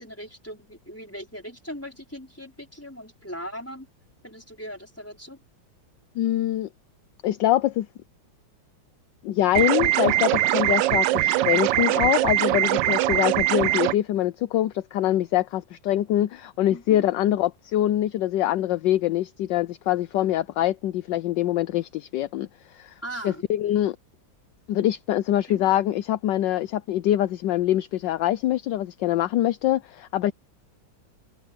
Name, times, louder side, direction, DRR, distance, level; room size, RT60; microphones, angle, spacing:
voice 1, 0.0-3.9 4.2-5.4 16.7-17.1 23.0-23.4 25.5-25.6, equal, 5° left, 4.3 m, -39 dB
voice 2, 6.2-6.7 7.2-7.9 9.2-22.9 23.2-24.0 24.7-30.3, left 13 dB, 75° left, 1.3 m, -24 dB
sound 1, 9.6-13.9, right 14 dB, 75° right, 1.2 m, -22 dB
omnidirectional pair, 2.1 m